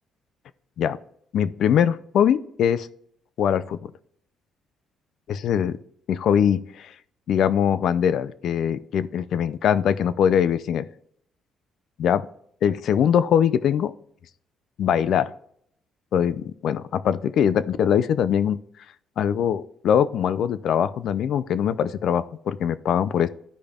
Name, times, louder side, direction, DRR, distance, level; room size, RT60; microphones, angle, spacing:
voice 1, 1.3-2.9 3.4-3.8 5.3-5.8 6.1-6.9 7.3-10.9 12.0-12.3 12.6-13.9 14.8-15.3 16.1-18.6 19.2-23.3, left 8 dB, 65° left, 15 dB, 0.4 m, -22 dB
14.0 x 5.1 x 2.4 m, 0.68 s
cardioid pair, 115°, 0 cm